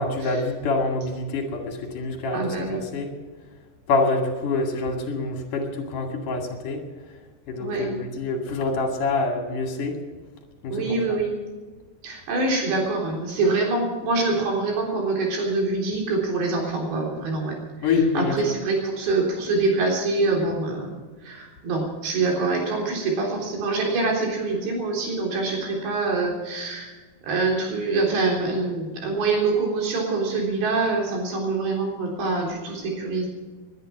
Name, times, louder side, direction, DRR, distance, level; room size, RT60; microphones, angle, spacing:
voice 1, 0.0-3.1 3.9-6.8 7.5-10.0 10.6-11.2 17.8-18.4, left 3 dB, 55° left, 3 dB, 3.4 m, -26 dB
voice 2, 2.3-2.8 7.6-7.9 10.7-11.3 12.0-26.9 27.2-33.3, right 3 dB, 80° right, 0 dB, 5.9 m, -25 dB
20.0 x 11.0 x 6.0 m, 1.4 s
omnidirectional pair, 4.9 m